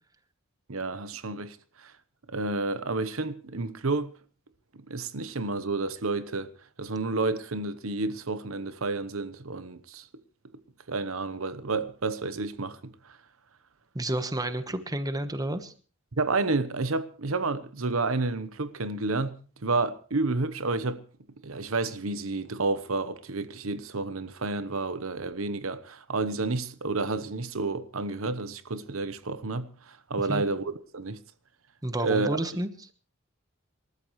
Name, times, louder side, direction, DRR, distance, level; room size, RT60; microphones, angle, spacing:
voice 1, 0.7-1.9 2.3-4.1 4.9-6.5 6.8-10.1 10.9-13.2 16.2-21.0 21.4-31.2 32.0-32.4, right 3 dB, 80° right, 1.0 m, -30 dB
voice 2, 13.9-15.7 30.3-30.4 31.8-32.7, right 1 dB, 20° right, 1.2 m, -30 dB
27.0 x 13.5 x 3.2 m
head